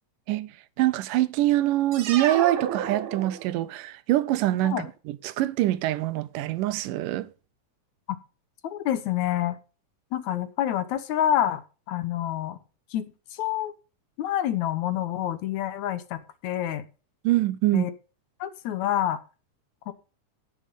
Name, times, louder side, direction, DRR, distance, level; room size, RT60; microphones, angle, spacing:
voice 1, 0.8-7.3 17.2-17.9, right 15 dB, 90° right, 2.3 m, -24 dB
sound 1, 1.9-3.8, right 8 dB, 65° right, 1.4 m, -31 dB
voice 2, 8.6-9.6 10.1-11.6 11.9-12.6 12.9-13.7 14.2-16.9 17.7-17.9 18.4-19.2 19.9-20.0, left 11 dB, 70° left, 2.0 m, -27 dB
10.0 x 7.5 x 5.3 m
omnidirectional pair, 3.7 m